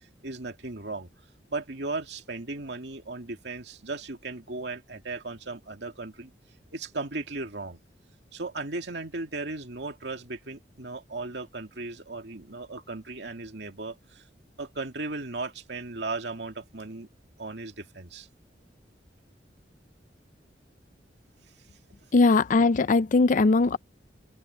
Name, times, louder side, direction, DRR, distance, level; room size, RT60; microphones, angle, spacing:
voice 1, 0.2-1.1 1.5-6.3 6.7-7.8 8.3-14.2 14.6-17.1 17.4-18.3, right 3 dB, 70° right, 2.6 m, -36 dB
voice 2, 22.1-23.8, left 3 dB, 45° left, 0.5 m, -20 dB
open air
head